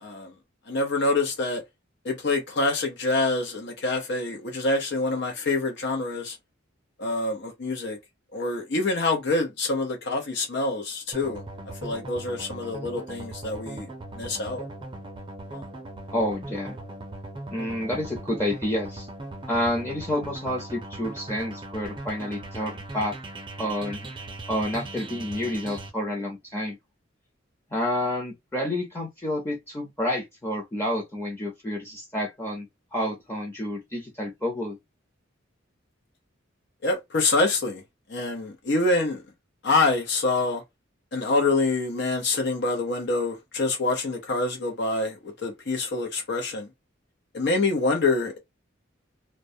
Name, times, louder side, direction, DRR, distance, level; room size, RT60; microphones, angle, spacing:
voice 1, 0.0-0.3 0.7-1.6 2.0-6.4 7.0-8.0 8.3-11.4 11.8-13.9 14.2-14.7 15.5-15.7 36.8-37.8 38.1-39.2 39.6-40.6 41.1-46.7 47.3-48.4, left 2 dB, 65° left, 0.7 m, -26 dB
sound 1, 11.1-25.9, right 2 dB, 25° right, 0.5 m, -39 dB
voice 2, 16.1-16.8 17.5-19.1 19.5-23.2 23.6-24.2 24.5-26.8 27.7-34.8, left 1 dB, 10° left, 0.7 m, -29 dB
2.2 x 2.1 x 2.6 m
head